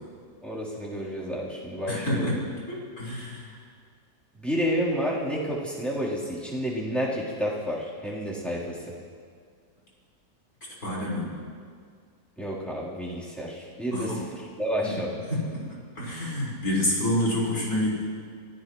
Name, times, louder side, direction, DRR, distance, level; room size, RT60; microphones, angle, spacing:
voice 1, 0.4-2.4 4.4-8.9 12.4-15.2, equal, ahead, -8 dB, 3.9 m, -30 dB
voice 2, 1.9-3.6 10.8-11.4 13.9-14.2 14.8-15.0 15.3-18.0, left 1 dB, 60° left, -7 dB, 5.6 m, -28 dB
27.5 x 16.0 x 3.2 m, 2.1 s
omnidirectional pair, 1.7 m